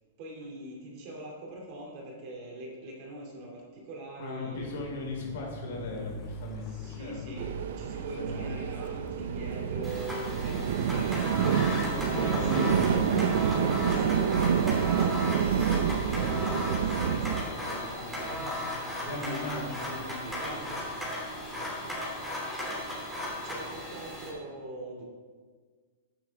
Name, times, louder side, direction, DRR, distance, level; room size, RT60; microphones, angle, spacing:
voice 1, 0.2-4.7 6.6-11.8 12.2-12.7 13.3-21.0 21.5-22.3 23.4-25.0, right 1 dB, 40° right, -1 dB, 2.5 m, -42 dB
voice 2, 4.2-7.2 8.2-8.5 11.8-14.2 16.0-16.5 19.0-20.2 20.4-20.6, left 2 dB, 70° left, -1 dB, 3.5 m, -37 dB
Car, 4.5-21.3, left 4 dB, 25° left, 0.7 m, -47 dB
sound 1, 7.4-17.4, right 8 dB, 65° right, 0.6 m, -28 dB
sound 2, 9.8-24.3, left 1 dB, ahead, 2.8 m, -36 dB
11.5 x 9.2 x 3.5 m, 1.5 s
supercardioid pair, 165°, 0 cm